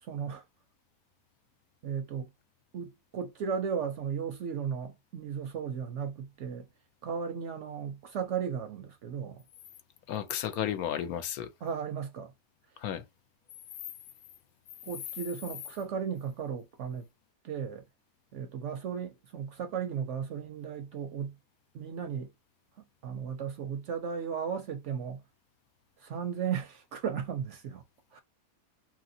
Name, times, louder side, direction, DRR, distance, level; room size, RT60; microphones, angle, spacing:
voice 1, 0.0-0.4 1.8-2.3 2.7-6.7 7.0-9.4 11.6-12.3 12.7-12.8 14.8-17.1 17.4-17.8 18.3-21.4 21.7-22.3 23.0-25.2 26.0-27.8 28.1-28.2, right 7 dB, 65° right, 0.7 m, -35 dB
voice 2, 10.1-11.5 12.8-13.0, left 10 dB, 75° left, 1.1 m, -33 dB
3.0 x 2.8 x 2.6 m
omnidirectional pair, 1.6 m